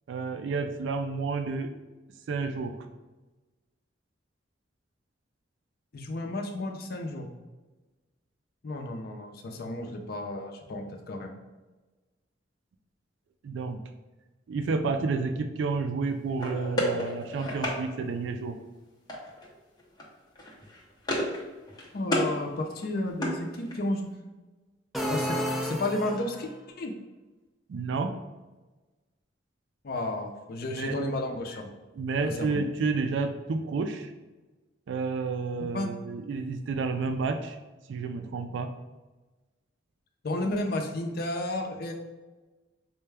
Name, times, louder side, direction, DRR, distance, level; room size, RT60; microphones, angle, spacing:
voice 1, 0.1-1.7 2.3-2.9 13.4-13.8 14.5-18.6 27.7-28.1 30.6-31.0 31.9-34.1 34.9-37.6 37.9-38.7, right 4 dB, 75° right, 7 dB, 0.3 m, -30 dB
voice 2, 5.9-7.3 8.6-11.3 21.8-24.1 25.1-25.3 25.6-26.5 26.8-26.9 29.8-31.7 32.2-32.6 35.7-35.9 40.2-41.9, left 1 dB, 55° left, 3 dB, 0.5 m, -32 dB
sound 1, 16.4-17.8 19.1-19.5 19.8-20.0 20.4-21.4 21.7-22.3 22.7-24.0, equal, 20° left, 0.8 m, -31 dB
sound 2, 24.9-26.5, equal, ahead, 0.3 m, -31 dB
4.5 x 2.2 x 3.3 m, 1.2 s
head